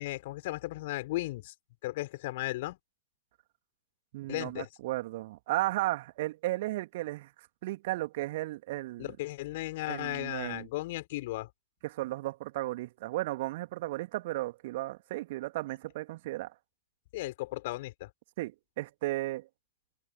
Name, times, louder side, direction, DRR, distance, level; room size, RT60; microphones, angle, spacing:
voice 1, 0.0-1.5 1.8-2.8 4.3-4.7 9.0-11.5 17.1-18.1, left 18 dB, 50° left, 5.4 m, -35 dB
voice 2, 4.1-7.3 7.6-9.2 9.9-10.7 11.8-16.5 18.4-19.5, right 18 dB, 50° right, 2.7 m, -34 dB
open air
figure-of-eight pair, 90°, 0 cm